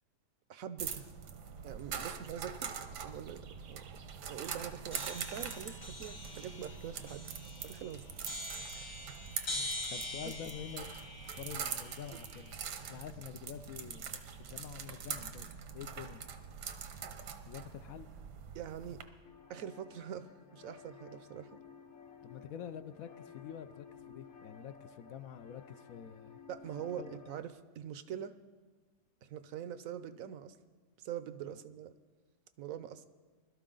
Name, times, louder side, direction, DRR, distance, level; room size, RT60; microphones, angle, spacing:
voice 1, 0.5-1.1 1.6-2.7 3.0-3.8 4.3-7.2 7.6-8.0 8.6-9.0 18.5-19.0 19.5-21.6 26.5-28.3 29.2-30.6 31.0-31.9 32.6-33.1, right 9 dB, 65° right, 0.9 m, -44 dB
sound 1, 0.8-19.0, right 7 dB, 80° right, 1.5 m, -44 dB
sound 2, 4.9-12.8, left 1 dB, 85° left, 3.5 m, -44 dB
voice 2, 9.9-12.6 12.9-15.5 15.7-16.3 17.5-18.1 22.2-26.4 26.8-27.3 31.5-31.6, left 9 dB, 70° left, 0.9 m, -47 dB
sound 3, 19.2-27.4, left 6 dB, 50° left, 1.2 m, -55 dB
21.0 x 12.5 x 3.8 m
omnidirectional pair, 1.8 m